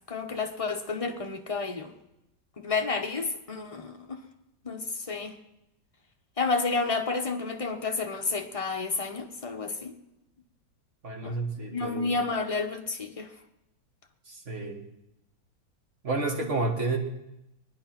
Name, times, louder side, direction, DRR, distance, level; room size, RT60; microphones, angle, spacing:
voice 1, 0.1-1.9 2.6-4.2 4.6-5.3 6.4-9.9 11.2-11.3 11.7-13.3, left 4 dB, 25° left, 3 dB, 1.0 m, -30 dB
voice 2, 11.0-12.2 14.3-14.8 16.0-17.0, right 3 dB, 40° right, 2 dB, 2.2 m, -30 dB
21.5 x 10.0 x 5.9 m, 0.89 s
omnidirectional pair, 2.0 m